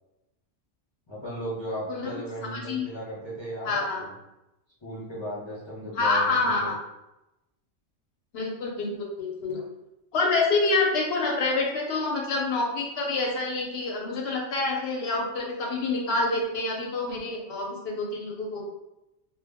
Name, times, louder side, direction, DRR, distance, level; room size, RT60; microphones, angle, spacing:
voice 1, 1.1-4.1 4.8-6.7, equal, 35° left, -7 dB, 0.5 m, -36 dB
voice 2, 1.9-2.2 2.5-2.9 3.6-4.0 5.9-6.7 8.3-9.6 10.1-18.6, left 3 dB, 65° left, -1 dB, 0.7 m, -27 dB
2.1 x 2.0 x 3.3 m, 0.91 s
omnidirectional pair, 1.3 m